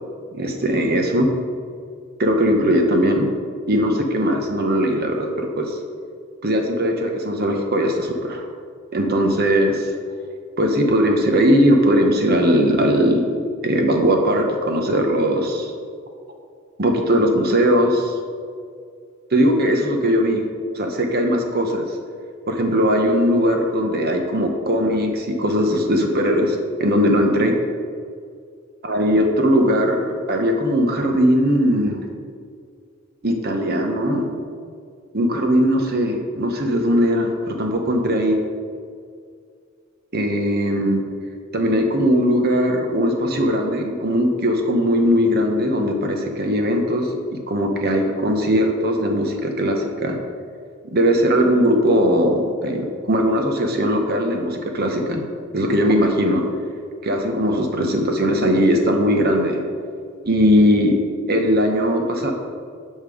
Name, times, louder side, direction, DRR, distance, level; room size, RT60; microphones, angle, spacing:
voice 1, 0.3-1.3 2.2-3.3 3.7-5.8 6.4-8.5 8.9-9.9 10.6-13.2 13.6-15.7 16.8-18.1 19.3-20.4 20.7-21.9 22.5-27.5 28.8-32.0 33.2-34.3 35.1-38.4 40.1-41.0 41.5-50.1 50.9-55.2 55.5-56.4 57.0-59.6 60.2-61.0 61.3-62.3, equal, 45° right, 3 dB, 1.0 m, -19 dB
8.9 x 5.5 x 4.9 m, 2.2 s
head